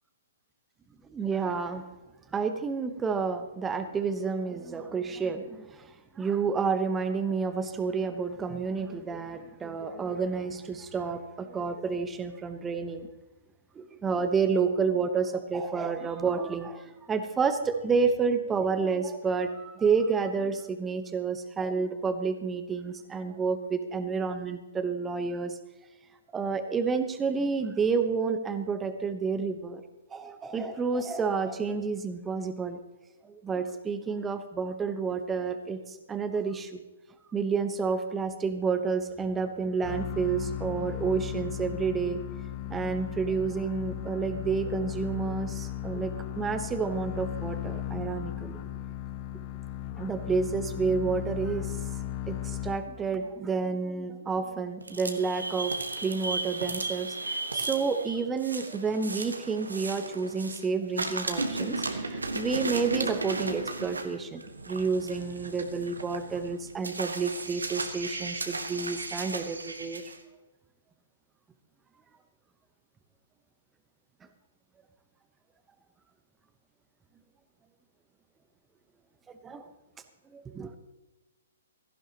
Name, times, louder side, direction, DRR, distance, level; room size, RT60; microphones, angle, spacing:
voice 1, 1.1-1.9 2.3-13.1 13.7-25.6 26.3-29.8 30.1-32.8 33.2-36.8 37.3-42.2 42.7-48.6 50.0-51.7 52.3-70.0 79.3-79.7 80.3-80.8, right 5 dB, 15° right, 9 dB, 1.0 m, -30 dB
sound 1, 39.8-53.2, left 11 dB, 30° left, 0.6 m, -36 dB
sound 2, 54.8-60.7 60.9-70.2, right 3 dB, 75° right, 1.4 m, -35 dB
16.5 x 14.5 x 3.0 m, 1.1 s
figure-of-eight pair, 120°, 0 cm